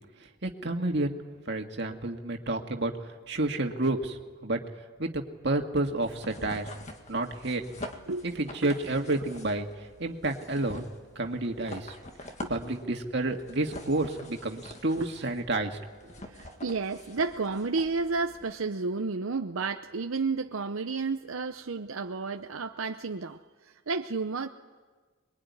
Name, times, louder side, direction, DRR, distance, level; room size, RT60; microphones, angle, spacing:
voice 1, 0.4-1.2 1.5-2.9 3.3-4.6 5.0-6.7 7.1-7.6 8.2-9.7 10.0-10.8 11.2-12.0 12.5-15.8 16.0-16.1, right 2 dB, 55° right, 3 dB, 2.0 m, -30 dB
sound 1, 6.0-18.5, left 1 dB, 35° left, 1.9 m, -46 dB
voice 2, 8.1-8.7 12.4-12.5 15.0-15.1 16.2-24.5, right 4 dB, 85° right, 6 dB, 0.8 m, -32 dB
25.5 x 22.0 x 9.7 m, 1.4 s
head